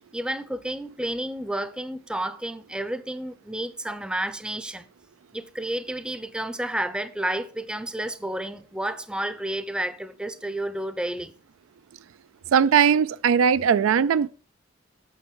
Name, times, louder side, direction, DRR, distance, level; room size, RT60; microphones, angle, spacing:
voice 1, 0.1-4.9 5.3-11.3, right 1 dB, 5° right, 0.5 m, -31 dB
voice 2, 12.5-14.3, right 7 dB, 90° right, 0.4 m, -19 dB
8.9 x 6.2 x 4.7 m
head